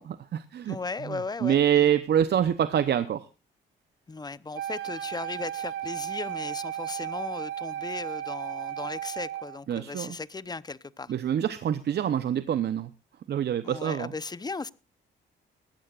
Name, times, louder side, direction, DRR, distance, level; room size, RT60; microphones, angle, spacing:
voice 1, 0.0-0.8 1.1-3.3 9.7-10.1 11.1-12.9 13.3-14.1, right 9 dB, 55° right, 13 dB, 0.8 m, -26 dB
voice 2, 0.7-1.9 4.1-11.1 13.6-14.7, left 4 dB, 20° left, 18 dB, 0.8 m, -37 dB
Wind instrument woodwind instrument, 4.5-9.6, right 11 dB, 85° right, 1.7 m, -35 dB
20.0 x 15.0 x 2.5 m, 0.31 s
cardioid pair, 90°, 20 cm